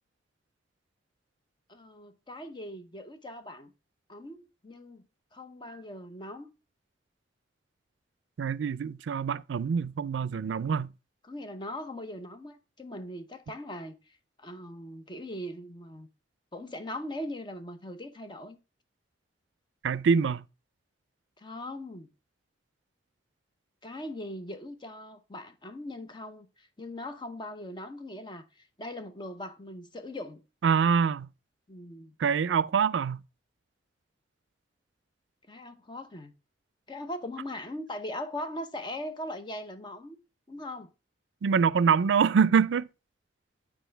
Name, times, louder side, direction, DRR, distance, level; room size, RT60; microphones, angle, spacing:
voice 1, 1.7-3.7 4.1-5.0 5.3-6.5 11.2-14.0 14.4-16.1 16.5-18.6 21.4-22.1 23.8-30.4 31.7-32.2 35.5-36.3 36.9-40.2 40.5-40.9, left 1 dB, 25° left, 0.9 m, -40 dB
voice 2, 8.4-10.9 19.8-20.4 30.6-31.3 32.2-33.2 41.4-42.9, right 6 dB, 85° right, 0.4 m, -25 dB
9.1 x 5.0 x 3.3 m
head